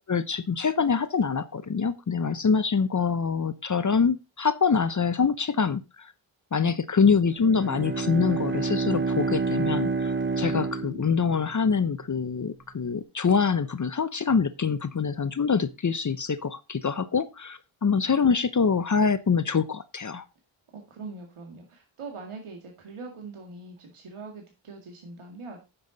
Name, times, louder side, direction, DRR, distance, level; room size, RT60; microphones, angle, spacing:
voice 1, 0.1-6.1 6.5-20.3, left 5 dB, 35° left, 13 dB, 0.8 m, -25 dB
Bowed string instrument, 7.3-11.7, right 4 dB, 25° right, 0.9 m, -28 dB
voice 2, 20.7-25.6, right 3 dB, 80° right, 2 dB, 2.2 m, -42 dB
9.5 x 7.0 x 4.0 m, 0.27 s
cardioid pair, 75°, 50 cm